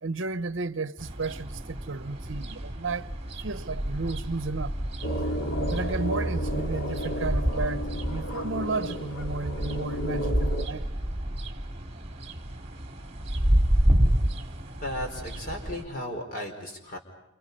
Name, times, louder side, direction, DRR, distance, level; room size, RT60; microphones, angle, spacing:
voice 1, 0.0-3.1 3.4-4.7 5.6-10.9, right 3 dB, 65° right, 0.8 m, -33 dB
sound 1, 1.0-15.8, equal, 30° right, 2.6 m, -29 dB
sound 2, 5.0-10.7, equal, 85° left, 2.4 m, -32 dB
voice 2, 14.8-17.0, left 1 dB, 45° left, 4.9 m, -35 dB
29.0 x 29.0 x 5.5 m
head